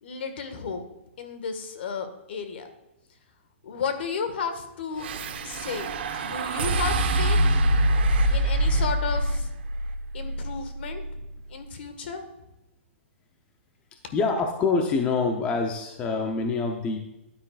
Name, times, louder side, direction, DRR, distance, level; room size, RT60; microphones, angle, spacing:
voice 1, 0.0-0.8 1.2-2.7 3.6-5.1 5.4-5.9 6.2-7.6 8.3-9.5 10.1-11.0 11.5-12.2, left 5 dB, 60° left, 8 dB, 1.7 m, -33 dB
sound 1, 5.0-11.4, right 1 dB, 60° right, 1.3 m, -25 dB
voice 2, 14.1-17.0, left 4 dB, 15° left, 4 dB, 0.7 m, -25 dB
13.0 x 9.7 x 2.4 m, 0.96 s
hypercardioid pair, 165°, 7 cm